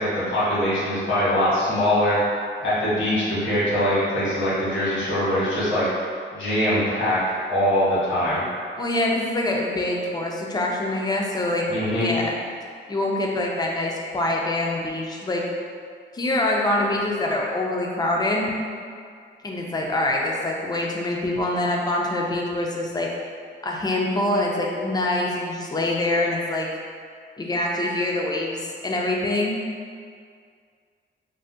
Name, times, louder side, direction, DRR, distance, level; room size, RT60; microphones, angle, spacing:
voice 1, 0.0-2.2 2.6-5.9 6.3-7.2 7.5-8.4 11.7-12.1, left 1 dB, 85° left, -10 dB, 1.2 m, -22 dB
voice 2, 8.8-11.7 11.9-12.3 12.9-15.5 16.1-18.5 19.4-23.1 23.6-26.7 27.4-29.6, left 1 dB, 20° left, -1 dB, 0.3 m, -25 dB
2.6 x 2.1 x 3.4 m, 2.1 s
wide cardioid pair, 135°, 20 cm